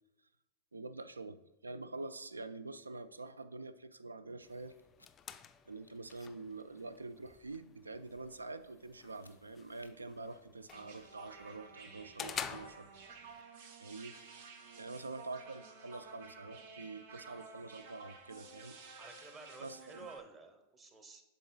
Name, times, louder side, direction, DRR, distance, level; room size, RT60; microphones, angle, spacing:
voice 1, 0.7-4.8 5.7-13.2 13.8-14.2 14.7-18.8 19.6-19.8, right 3 dB, 80° right, 14 dB, 0.3 m, -46 dB
sound 1, 4.4-13.4, left 8 dB, 25° left, 0.3 m, -49 dB
sound 2, 4.7-5.1 5.9-6.3 9.0-9.4 9.8-9.9, left 2 dB, 90° left, 0.4 m, -63 dB
sound 3, 10.7-20.2, right 4 dB, 55° right, 0.7 m, -53 dB
voice 2, 18.9-21.2, right 3 dB, 20° right, 6 dB, 0.9 m, -53 dB
11.5 x 3.9 x 2.3 m, 0.99 s
figure-of-eight pair, 90°, 0 cm